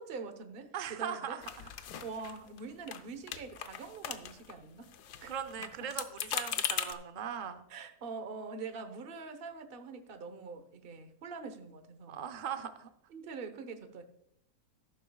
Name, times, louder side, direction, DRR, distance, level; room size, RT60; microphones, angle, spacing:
voice 1, 0.0-1.4 2.0-4.9 5.2-5.3 7.7-12.2 13.1-14.0, right 4 dB, 40° right, 8 dB, 1.0 m, -44 dB
voice 2, 0.7-1.7 5.3-7.7 12.1-12.9, right 8 dB, 80° right, 9 dB, 0.4 m, -39 dB
sound 1, 1.4-2.6 2.9-3.0 3.3-4.5 4.8-6.9, left 9 dB, 70° left, 1.3 m, -38 dB
14.0 x 12.0 x 2.3 m, 0.79 s
omnidirectional pair, 1.9 m